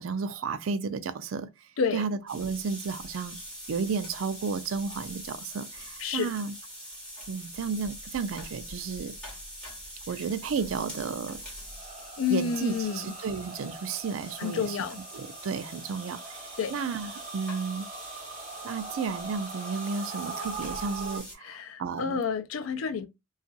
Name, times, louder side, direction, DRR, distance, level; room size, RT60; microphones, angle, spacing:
voice 1, 0.0-3.4 3.7-6.5 7.3-9.2 10.1-11.4 12.3-14.8 15.1-17.9 18.6-22.2, right 5 dB, 75° right, 0.4 m, -33 dB
sound 1, 2.3-21.3, equal, 5° left, 1.5 m, -44 dB
voice 2, 6.0-6.3 12.2-13.1 14.4-15.0 16.6-16.7 21.4-23.1, left 6 dB, 80° left, 0.4 m, -29 dB
sound 2, 11.6-21.2, right 3 dB, 40° right, 0.8 m, -42 dB
2.8 x 2.4 x 2.6 m
head